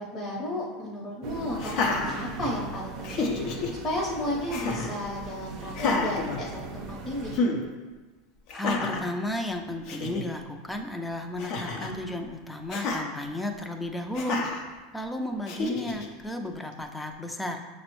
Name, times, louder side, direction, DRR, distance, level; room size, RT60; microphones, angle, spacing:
voice 1, 0.0-7.4, left 1 dB, 30° left, -5 dB, 0.8 m, -33 dB
sound 1, 1.2-7.4, right 4 dB, 55° right, 0.5 m, -40 dB
Laughter, 1.6-2.7 3.0-3.7 4.5-5.0 5.7-6.9 7.3-7.6 8.5-9.1 9.6-9.7 9.9-10.2 11.4-12.0 12.7-13.0 14.1-14.6 15.5-16.1, left 3 dB, 55° left, 0.6 m, -29 dB
voice 2, 8.5-14.4 14.9-17.7, left 1 dB, 5° left, 4 dB, 0.4 m, -33 dB
5.9 x 2.0 x 3.0 m, 1.3 s
supercardioid pair, 110°, 0 cm